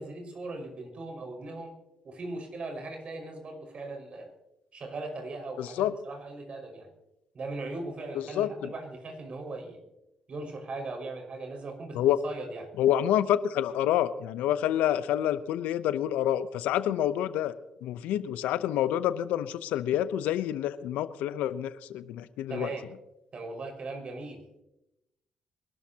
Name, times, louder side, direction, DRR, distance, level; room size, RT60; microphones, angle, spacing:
voice 1, 0.0-1.8 2.0-4.3 4.7-6.9 7.3-9.8 10.3-12.7 22.5-22.8 23.3-24.4, right 2 dB, 50° right, 4 dB, 5.5 m, -39 dB
voice 2, 5.6-5.9 8.1-8.7 11.9-12.2 12.8-17.5 17.8-22.7, left 11 dB, 75° left, 13 dB, 0.8 m, -28 dB
24.5 x 12.5 x 2.9 m, 0.90 s
hypercardioid pair, 55°, 3 cm